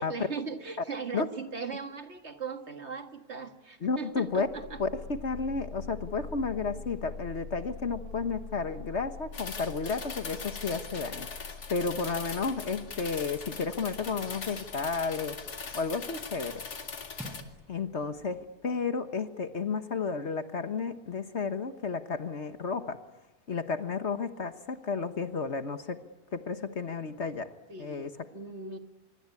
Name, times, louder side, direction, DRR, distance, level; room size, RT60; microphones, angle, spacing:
voice 1, 0.0-4.8 27.7-28.8, right 5 dB, 45° right, 7 dB, 2.0 m, -39 dB
voice 2, 3.8-4.5 4.8-11.3 11.7-15.4 15.7-16.6 17.7-23.0 23.5-26.0 26.3-27.5 27.8-28.1, left 4 dB, 50° left, 10 dB, 1.5 m, -32 dB
sound 1, 4.2-17.6, left 4 dB, 70° left, 1.8 m, -46 dB
sound 2, 9.3-17.4, left 5 dB, 90° left, 2.7 m, -41 dB
sound 3, 12.2-18.8, equal, ahead, 5.7 m, -53 dB
26.0 x 23.5 x 9.7 m, 0.99 s
omnidirectional pair, 1.6 m